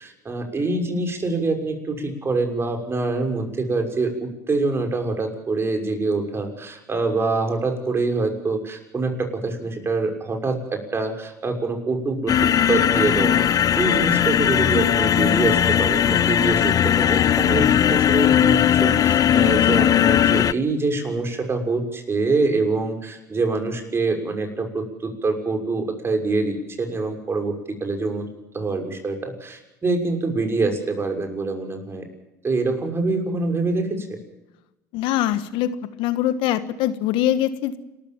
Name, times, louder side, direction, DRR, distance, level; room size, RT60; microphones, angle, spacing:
voice 1, 0.0-12.3 12.7-28.2 28.5-32.1 32.4-34.1, right 3 dB, 25° right, 4 dB, 6.4 m, -25 dB
sound 1, 12.3-20.5, left 10 dB, 40° left, 0.7 m, -18 dB
voice 2, 34.9-35.7 36.0-37.8, left 12 dB, 65° left, 13 dB, 1.4 m, -23 dB
29.5 x 14.0 x 7.3 m, 0.96 s
hypercardioid pair, 75°, 9 cm